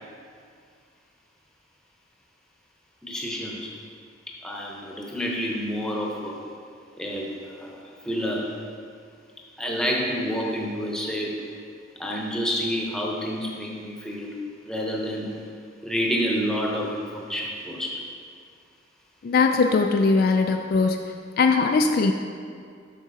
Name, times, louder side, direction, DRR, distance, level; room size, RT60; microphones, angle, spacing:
voice 1, 3.0-3.7 4.4-6.4 7.0-8.6 9.6-11.4 12.0-14.4 14.7-15.4 15.8-18.0, equal, 5° left, -2 dB, 0.9 m, -29 dB
voice 2, 19.2-21.0 21.4-22.1, left 4 dB, 50° left, 4 dB, 0.3 m, -20 dB
7.6 x 6.1 x 4.0 m, 2.2 s
head